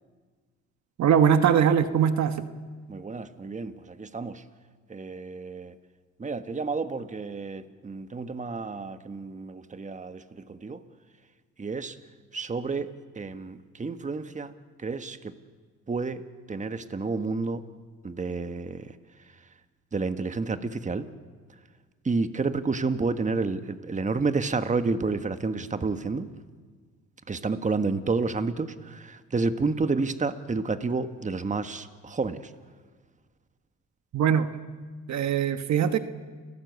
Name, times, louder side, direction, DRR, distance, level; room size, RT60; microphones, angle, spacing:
voice 1, 1.0-2.4 34.1-34.5 35.1-36.0, right 8 dB, 65° right, 10 dB, 1.4 m, -21 dB
voice 2, 2.9-4.4 4.9-5.8 6.2-10.8 11.6-12.0 12.3-14.5 14.8-15.4 15.9-16.2 16.5-17.6 18.0-19.4 19.9-21.1 22.0-26.3 27.3-32.5, right 4 dB, 25° right, 10 dB, 1.4 m, -30 dB
30.0 x 18.0 x 8.2 m, 1.5 s
cardioid pair, 90°, 30 cm